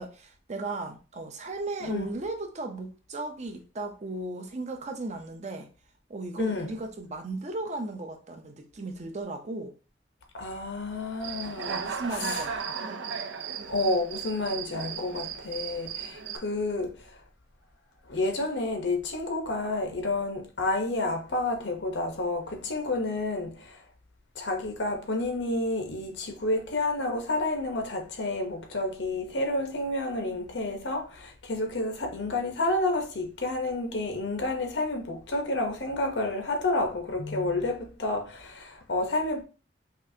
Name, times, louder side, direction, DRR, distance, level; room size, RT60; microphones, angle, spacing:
voice 1, 0.0-5.7 6.1-9.7 11.6-13.0, right 2 dB, 40° right, 0.6 m, -36 dB
voice 2, 6.4-6.7 10.3-12.4 13.7-17.2 18.1-23.8 24.3-39.4, left 2 dB, 90° left, 0.9 m, -30 dB
Human voice / Cricket, 11.2-16.4, right 6 dB, 90° right, 0.4 m, -35 dB
5.2 x 2.5 x 2.7 m
head